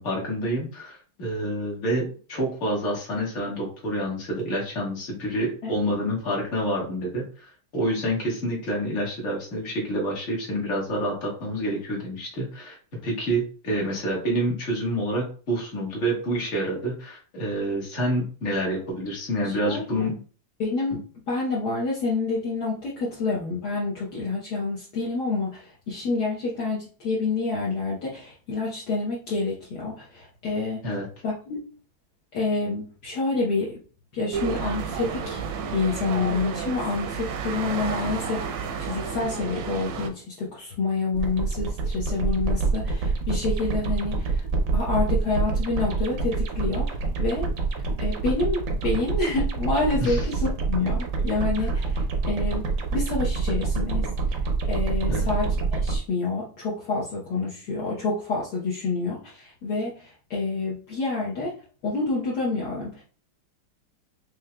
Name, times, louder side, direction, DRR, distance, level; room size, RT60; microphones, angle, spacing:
voice 1, 0.0-12.8 13.0-20.2 30.8-31.1 50.0-50.2 51.6-51.7 55.1-55.3, right 1 dB, 40° left, -2 dB, 1.6 m, -28 dB
voice 2, 19.4-20.1 20.6-21.0 21.3-30.9 31.2-31.6 32.3-33.8 34.1-35.4 35.7-44.5 44.7-47.5 48.0-54.1 54.7-61.5 61.8-63.0, left 3 dB, 60° left, -5 dB, 1.5 m, -28 dB
sound 1, 34.3-40.1, right 6 dB, 85° right, 1.4 m, -31 dB
sound 2, 41.1-56.0, right 3 dB, 65° right, 0.8 m, -26 dB
5.2 x 3.2 x 2.2 m, 0.40 s
omnidirectional pair, 2.1 m